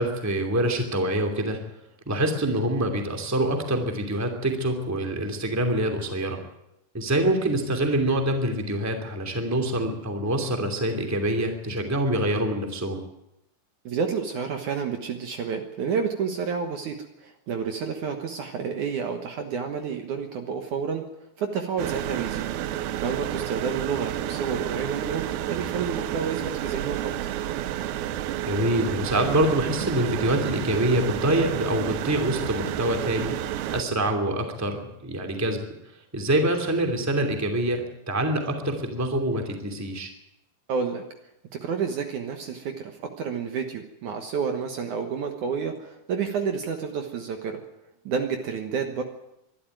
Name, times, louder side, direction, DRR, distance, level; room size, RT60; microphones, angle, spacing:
voice 1, 0.0-1.6 2.1-6.4 6.9-13.0 28.5-33.3 33.7-35.6 36.1-40.1, right 1 dB, 5° right, 4 dB, 1.9 m, -25 dB
voice 2, 13.9-21.0 21.4-27.1 40.7-41.0 41.6-42.9 43.2-47.6 48.1-49.0, right 6 dB, 60° right, 5 dB, 2.4 m, -30 dB
sound 1, 21.8-33.8, right 12 dB, 80° right, 2.8 m, -30 dB
23.0 x 12.5 x 9.1 m, 0.87 s
omnidirectional pair, 4.4 m